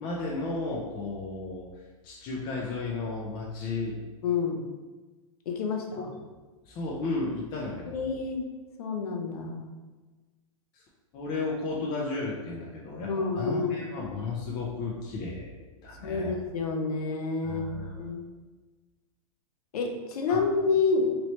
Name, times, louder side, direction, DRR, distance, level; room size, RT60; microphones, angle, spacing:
voice 1, 0.0-1.7 2.0-4.0 6.0-6.1 6.7-8.1 10.7-10.8 11.1-15.5 15.8-16.3 17.4-18.1 20.3-20.4, left 3 dB, 25° left, -4 dB, 0.4 m, -33 dB
voice 2, 4.2-4.6 5.5-6.1 7.8-8.5 8.8-9.7 13.0-13.8 16.0-17.7 18.0-18.2 19.7-21.1, left 4 dB, 80° left, 3 dB, 0.7 m, -28 dB
3.0 x 2.8 x 2.9 m, 1.3 s
hypercardioid pair, 140°, 19 cm